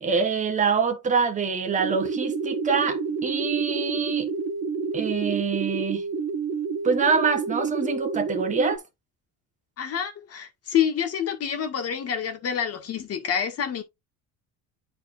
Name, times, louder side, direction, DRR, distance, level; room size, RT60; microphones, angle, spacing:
voice 1, 0.0-4.3 4.9-6.0 6.8-8.8, right 5 dB, 20° right, 1.2 m, -25 dB
sound 1, 1.8-8.8, right 5 dB, 45° right, 1.2 m, -29 dB
voice 2, 9.8-13.8, left 8 dB, 40° left, 1.8 m, -27 dB
10.5 x 4.3 x 2.5 m
cardioid pair, 155°, 36 cm